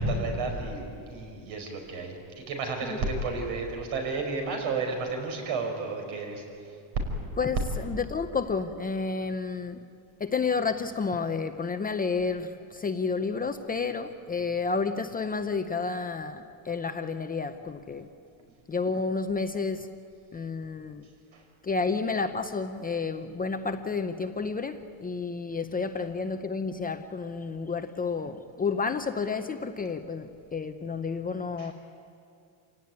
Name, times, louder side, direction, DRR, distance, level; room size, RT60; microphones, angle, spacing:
voice 1, 0.0-2.1 2.5-6.4 21.3-21.4 31.6-31.7, right 3 dB, 70° right, 3 dB, 5.6 m, -31 dB
voice 2, 7.4-9.8 10.2-18.1 18.7-19.9 20.3-21.1 21.6-31.7, left 4 dB, 20° left, 7 dB, 0.6 m, -30 dB
27.5 x 17.5 x 9.6 m, 2.4 s
cardioid pair, 165°, 48 cm